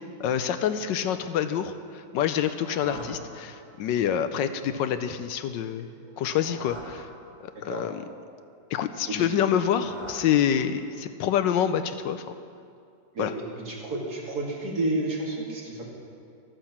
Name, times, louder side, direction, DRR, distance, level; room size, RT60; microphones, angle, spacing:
voice 1, 0.2-5.9 6.2-7.1 7.6-8.0 8.7-12.3 13.2-13.3, left 9 dB, 80° left, 10 dB, 1.3 m, -27 dB
sound 1, 2.2-4.0 6.0-7.8 9.3-11.1, right 1 dB, 25° right, 1.6 m, -46 dB
voice 2, 13.7-15.8, right 2 dB, 55° right, -2 dB, 2.7 m, -30 dB
14.0 x 8.8 x 7.2 m, 2.4 s
omnidirectional pair, 2.0 m